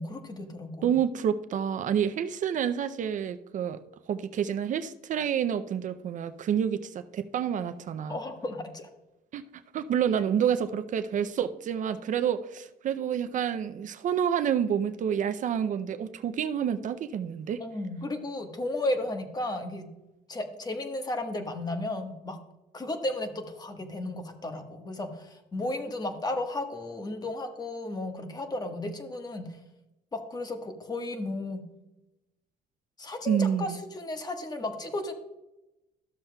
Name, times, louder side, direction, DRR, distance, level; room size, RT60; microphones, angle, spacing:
voice 1, 0.0-0.9 8.1-8.9 17.6-19.9 20.3-22.4 22.7-29.5 30.1-31.6 33.0-35.1, left 2 dB, 25° left, 6 dB, 1.2 m, -34 dB
voice 2, 0.8-3.8 4.1-8.2 9.3-17.6 33.3-33.8, right 8 dB, 50° right, 11 dB, 0.5 m, -28 dB
13.0 x 7.1 x 2.2 m, 0.95 s
cardioid pair, 110°, 17 cm